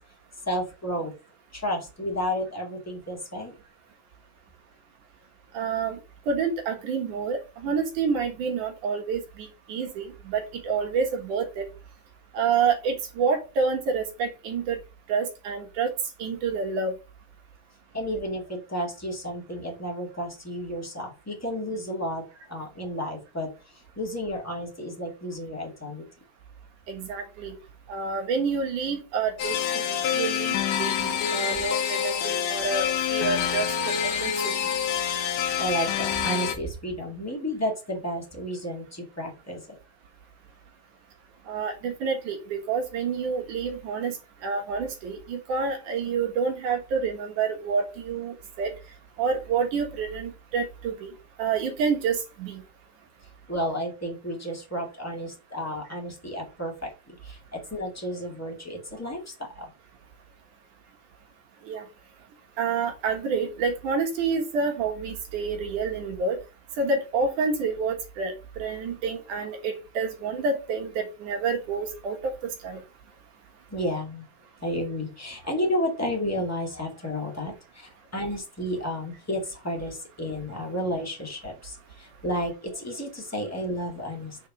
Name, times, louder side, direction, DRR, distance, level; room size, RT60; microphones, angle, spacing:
voice 1, 0.4-1.1 1.5-3.5 17.9-22.2 22.5-23.5 23.9-26.0 35.6-39.8 53.5-59.2 59.5-59.7 73.7-74.2 74.6-84.4, equal, 10° left, 0 dB, 0.7 m, -32 dB
voice 2, 5.5-6.0 6.3-11.7 12.3-14.8 15.1-15.9 16.2-16.9 26.9-27.6 27.9-34.5 41.5-44.2 44.4-48.7 49.2-51.1 51.4-52.6 61.7-61.8 62.6-66.4 66.8-72.3 72.6-72.8, right 5 dB, 60° right, 2 dB, 2.5 m, -28 dB
sound 1, 29.4-36.5, left 8 dB, 70° left, 2.2 m, -27 dB
6.7 x 4.7 x 6.1 m, 0.30 s
omnidirectional pair, 4.9 m